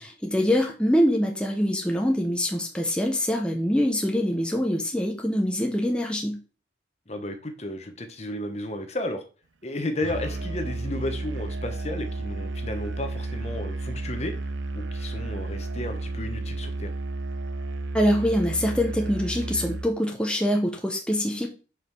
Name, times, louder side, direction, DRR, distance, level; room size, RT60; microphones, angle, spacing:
voice 1, 0.0-6.4 17.9-21.5, equal, 5° left, 1 dB, 1.0 m, -24 dB
voice 2, 7.1-9.3 9.6-16.9, left 1 dB, 35° left, 6 dB, 1.1 m, -33 dB
Musical instrument, 10.0-19.9, right 2 dB, 85° right, 0.6 m, -32 dB
5.6 x 5.0 x 6.2 m, 0.35 s
head